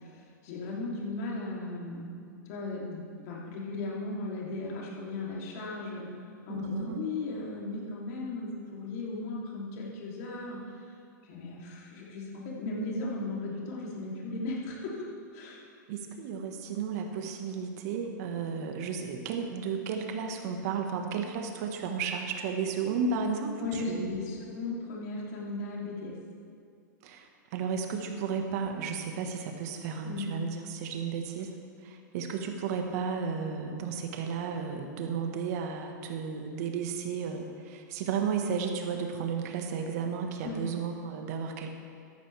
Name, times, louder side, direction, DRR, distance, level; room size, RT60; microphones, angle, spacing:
voice 1, 0.0-6.1 6.5-10.6 11.2-14.9 15.3-15.6 23.6-26.1 30.0-30.3 40.4-40.6, left 2 dB, 55° left, -4 dB, 3.1 m, -36 dB
voice 2, 6.5-7.0 15.9-24.3 27.0-31.5 31.8-41.7, right 6 dB, 55° right, 4 dB, 1.5 m, -33 dB
14.0 x 11.0 x 3.5 m, 2.3 s
hypercardioid pair, 125°, 10 cm